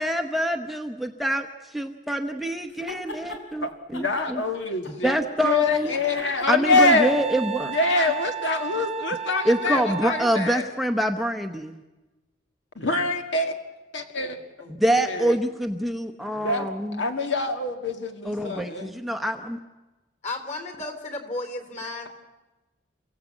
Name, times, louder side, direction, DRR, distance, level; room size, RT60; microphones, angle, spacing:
voice 1, 0.0-4.4 5.0-5.9 6.5-7.7 9.4-11.8 14.8-17.0 18.3-19.6, right 1 dB, ahead, 4 dB, 0.8 m, -26 dB
sound 1, 2.7-3.4 3.9-5.3 5.7-7.9, left 1 dB, 85° left, 4.3 m, -41 dB
voice 2, 3.6-7.1 7.6-10.7 12.7-13.5 13.9-14.4 14.8-15.4 16.3-19.0, left 3 dB, 70° left, 5 dB, 1.8 m, -25 dB
voice 3, 5.9-6.2 14.6-14.7 20.2-22.1, left 2 dB, 40° left, 7 dB, 3.6 m, -34 dB
Wind instrument woodwind instrument, 6.9-10.5, right 7 dB, 30° right, 0.8 m, -33 dB
29.0 x 16.5 x 8.4 m, 1.2 s
head